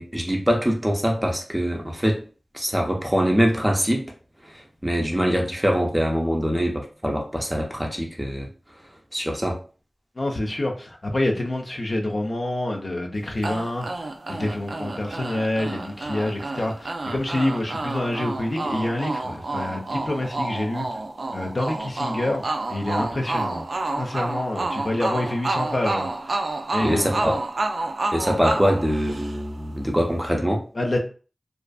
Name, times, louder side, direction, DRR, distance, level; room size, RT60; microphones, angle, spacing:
voice 1, 0.0-2.2 2.5-4.1 4.8-8.5 9.1-9.6 26.8-27.4 28.1-30.6, equal, 10° right, 1 dB, 0.5 m, -23 dB
voice 2, 10.2-20.9 21.3-22.4 22.7-23.6 24.0-26.1 26.7-27.3 30.7-31.0, left 1 dB, 50° left, 1 dB, 0.5 m, -27 dB
sound 1, 13.4-29.6, right 2 dB, 70° right, 0.3 m, -29 dB
2.4 x 2.4 x 2.2 m, 0.38 s
wide cardioid pair, 70°, 0 cm